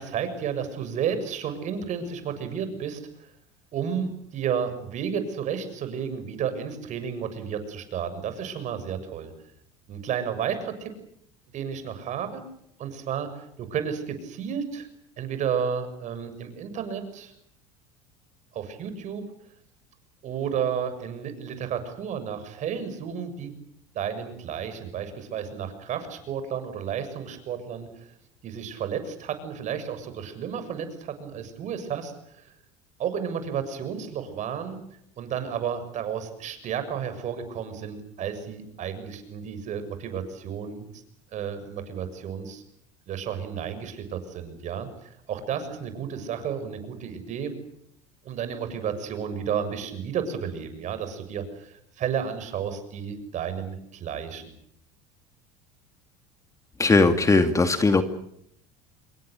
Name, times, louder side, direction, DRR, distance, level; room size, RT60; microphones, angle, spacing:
voice 1, 0.0-3.3 3.7-9.3 9.9-10.9 11.5-12.5 12.8-14.9 15.2-17.3 18.5-19.2 20.2-23.5 23.9-28.1 28.4-32.5 33.0-34.8 35.2-41.0 41.3-42.6 43.1-47.6 48.2-54.5, right 7 dB, 50° right, 10 dB, 7.0 m, -32 dB
voice 2, 56.8-58.0, left 3 dB, 20° left, 8 dB, 2.4 m, -19 dB
27.0 x 23.0 x 8.2 m, 0.71 s
supercardioid pair, 95°, 16 cm